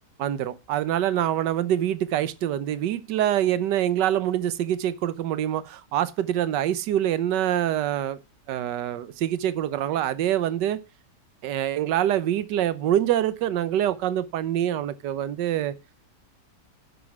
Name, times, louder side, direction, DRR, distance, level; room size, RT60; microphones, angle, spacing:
voice 1, 0.2-8.2 8.5-10.8 11.4-15.7, right 11 dB, 80° right, 1.4 m, -25 dB
11.0 x 6.2 x 5.9 m
omnidirectional pair, 1.9 m